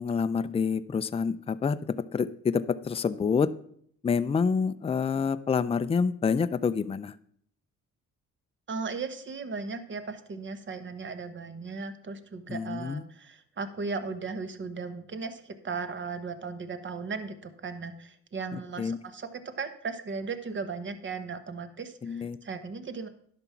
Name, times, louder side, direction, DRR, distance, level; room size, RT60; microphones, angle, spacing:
voice 1, 0.0-3.5 4.0-7.1 12.5-13.0 18.5-19.0 22.0-22.4, left 5 dB, 20° left, 13 dB, 0.4 m, -27 dB
voice 2, 8.7-23.1, right 4 dB, 40° right, 10 dB, 1.1 m, -37 dB
11.0 x 6.0 x 5.7 m, 0.65 s
cardioid pair, 90°, 30 cm